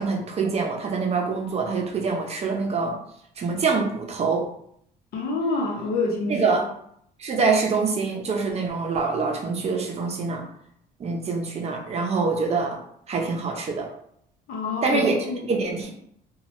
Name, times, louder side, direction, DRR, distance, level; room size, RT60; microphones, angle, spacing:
voice 1, 0.0-2.9 3.4-4.5 6.3-6.6 7.2-10.4 11.0-12.8 13.1-13.9 14.8-15.2 15.5-15.9, right 4 dB, 40° right, 1 dB, 0.6 m, -25 dB
voice 2, 5.1-6.6 14.5-15.5, left 2 dB, 70° left, -1 dB, 0.8 m, -27 dB
2.7 x 2.3 x 3.0 m, 0.69 s
cardioid pair, 110°, 17 cm